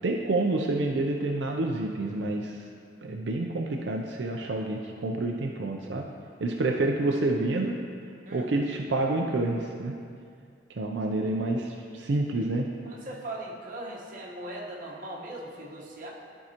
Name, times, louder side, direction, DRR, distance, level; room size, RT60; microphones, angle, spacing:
voice 1, 0.0-2.6 3.0-6.1 6.4-7.8 8.3-9.9 10.8-12.7, right 2 dB, 85° right, 1 dB, 0.5 m, -28 dB
voice 2, 12.8-16.1, right 1 dB, 50° right, -3 dB, 1.2 m, -39 dB
12.0 x 4.7 x 2.9 m, 2.3 s
head